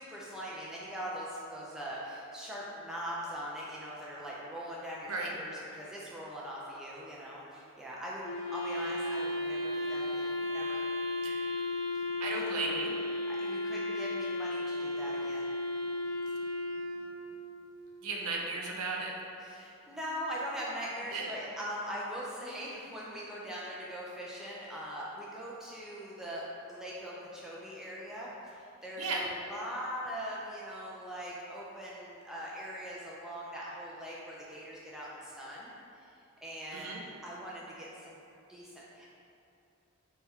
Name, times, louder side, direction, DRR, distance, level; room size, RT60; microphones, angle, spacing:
voice 1, 0.0-8.2 8.5-10.8 12.3-12.7 13.3-15.5 19.4-36.1 36.4-38.2 38.5-39.1, equal, ahead, -6 dB, 0.3 m, -41 dB
Wind instrument woodwind instrument, 8.2-17.5, left 2 dB, 65° left, 0.5 m, -34 dB
voice 2, 12.2-12.9 18.0-19.1 21.1-21.3 29.0-29.2 36.7-37.0, right 3 dB, 85° right, -1 dB, 0.5 m, -35 dB
4.3 x 2.3 x 3.2 m, 2.7 s
head